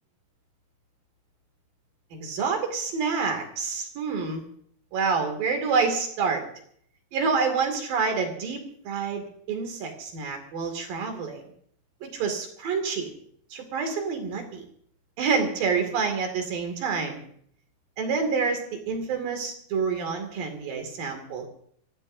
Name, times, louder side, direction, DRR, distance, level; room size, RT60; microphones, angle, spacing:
voice 1, 2.1-4.4 4.9-6.4 7.1-11.4 12.0-13.1 13.5-14.6 15.2-17.2 18.0-21.5, right 5 dB, 65° right, 5 dB, 4.0 m, -28 dB
25.5 x 16.0 x 2.7 m, 0.63 s
omnidirectional pair, 4.4 m